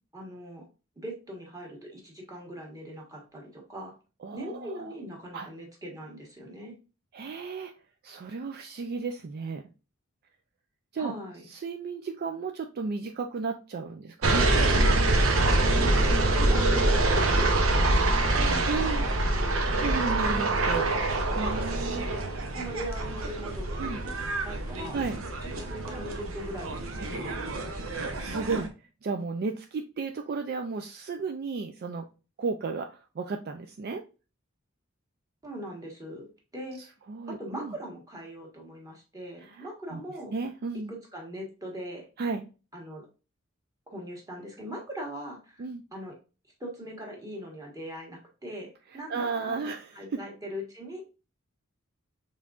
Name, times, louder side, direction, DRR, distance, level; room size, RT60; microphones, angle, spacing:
voice 1, 0.1-0.6 1.0-4.0 4.3-6.7 11.0-11.5 15.7-19.7 20.7-21.2 22.5-25.0 25.4-28.1 35.4-36.9 37.4-40.3 40.9-42.1 42.7-43.1 43.9-45.6 45.9-46.1 46.6-51.0, right 1 dB, 15° right, -1 dB, 1.6 m, -41 dB
voice 2, 4.2-4.9 5.3-5.5 7.1-7.7 8.0-9.6 10.9-11.1 11.5-14.8 18.7-19.1 19.8-20.8 21.4-22.1 23.8-24.0 24.9-25.2 28.1-32.1 32.4-34.0 37.1-37.7 39.4-40.0 40.3-40.9 42.2-42.5 45.6-45.8 48.9-50.2, right 4 dB, 50° right, 5 dB, 0.4 m, -34 dB
sound 1, 14.2-28.7, right 2 dB, 75° right, 0.8 m, -25 dB
5.6 x 3.6 x 2.4 m, 0.33 s
head